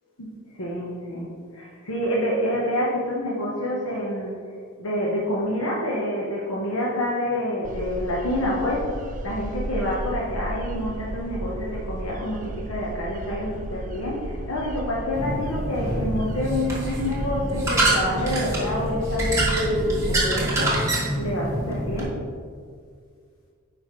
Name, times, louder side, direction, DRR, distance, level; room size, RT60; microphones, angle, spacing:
voice 1, 0.2-4.4 4.8-8.9 9.2-20.9 21.2-22.2, left 1 dB, 85° left, -4 dB, 1.0 m, -28 dB
sound 1, 7.6-20.5, right 1 dB, 40° right, 0.4 m, -34 dB
sound 2, 15.1-22.0, right 1 dB, 15° right, 1.7 m, -25 dB
9.7 x 5.1 x 3.2 m, 2.1 s
head